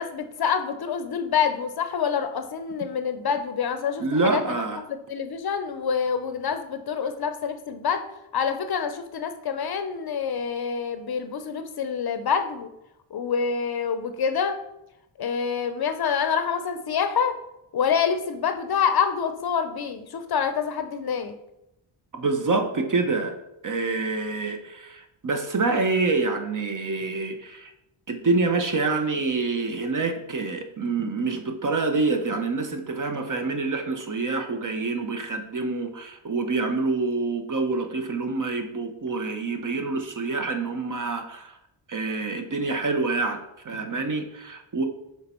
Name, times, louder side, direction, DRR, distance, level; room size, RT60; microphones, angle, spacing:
voice 1, 0.0-4.4 5.1-8.0 8.3-12.7 13.1-14.6 15.2-17.4 17.7-21.3, left 6 dB, 50° left, 9 dB, 0.6 m, -26 dB
voice 2, 4.0-4.8 22.1-23.4 23.6-27.7 28.1-41.6 41.9-44.8, right 3 dB, 40° right, 6 dB, 0.8 m, -26 dB
6.5 x 3.5 x 4.3 m, 0.88 s
cardioid pair, 75°, 50 cm